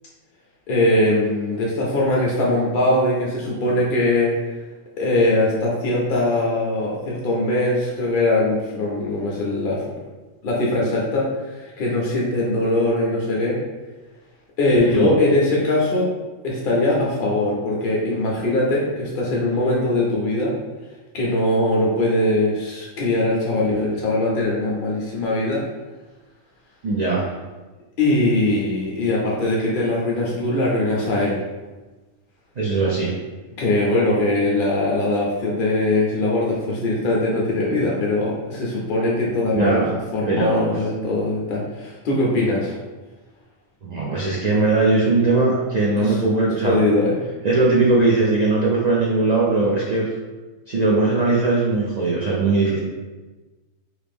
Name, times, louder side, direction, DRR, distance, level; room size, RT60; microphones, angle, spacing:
voice 1, 0.7-4.3 5.0-9.8 10.4-13.6 14.6-16.1 16.4-20.5 21.1-25.6 28.0-31.4 33.6-39.8 40.1-42.8 46.0-46.2 46.6-47.1, left 2 dB, 55° left, -4 dB, 0.6 m, -21 dB
voice 2, 26.8-27.3 32.6-33.1 39.5-39.8 40.3-40.7 43.8-46.8 47.4-50.1 50.7-52.8, right 3 dB, 85° right, -5 dB, 0.3 m, -19 dB
3.1 x 2.5 x 3.4 m, 1.2 s
omnidirectional pair, 1.4 m